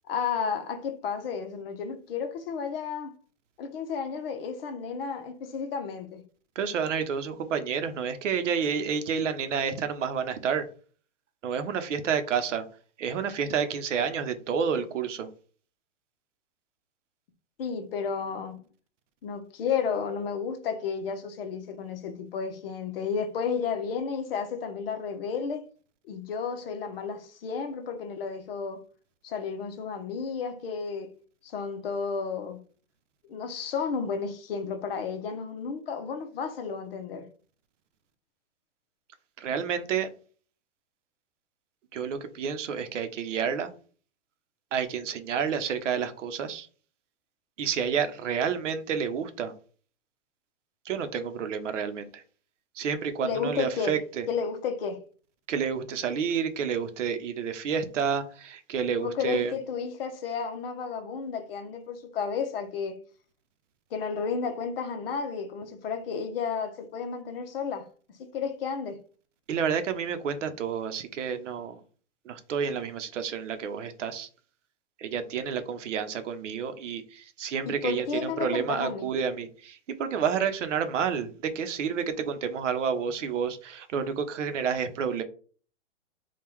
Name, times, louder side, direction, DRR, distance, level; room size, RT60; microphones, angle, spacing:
voice 1, 0.1-3.1 3.6-6.2 17.6-18.6 19.2-25.6 26.1-28.8 29.2-31.1 31.4-32.6 33.3-37.2 53.2-54.0 54.3-55.0 59.0-63.0 63.9-69.0 77.6-79.1, left 6 dB, 50° left, 0.8 m, -32 dB
voice 2, 6.6-10.7 11.4-12.6 13.0-15.3 39.4-40.1 41.9-43.7 44.7-46.7 47.6-49.5 50.9-52.2 52.8-54.2 55.5-59.5 69.5-71.8 72.3-74.3 75.0-85.2, right 7 dB, 80° right, 0.8 m, -29 dB
3.7 x 2.4 x 4.5 m
hypercardioid pair, 155°, 37 cm